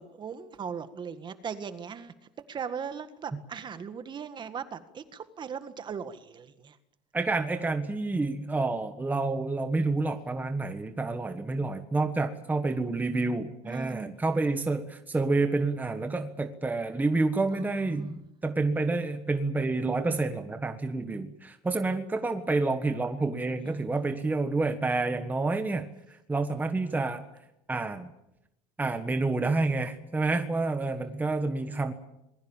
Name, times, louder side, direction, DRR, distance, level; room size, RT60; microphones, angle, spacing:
voice 1, 0.0-2.1 2.5-6.8 13.6-14.2 17.5-18.2 23.6-23.9, right 6 dB, 30° right, 11 dB, 1.8 m, -39 dB
voice 2, 7.1-27.3 27.7-28.1 28.8-31.9, right 3 dB, 10° right, 7 dB, 1.4 m, -29 dB
26.5 x 21.0 x 7.3 m, 0.85 s
cardioid pair, 140°, 15 cm